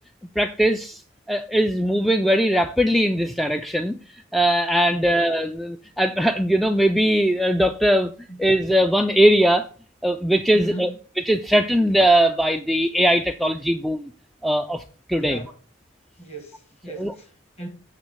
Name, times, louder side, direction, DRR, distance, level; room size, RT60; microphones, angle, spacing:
voice 1, 0.4-1.0 1.3-4.0 4.3-8.1 8.4-9.7 10.0-10.9 11.3-14.1 14.4-14.8 15.1-15.4 17.0-17.1, equal, ahead, 0.3 m, -20 dB
voice 2, 10.5-11.0 15.1-15.6 16.2-17.7, right 2 dB, 35° left, 1.8 m, -37 dB
8.3 x 3.7 x 6.3 m
head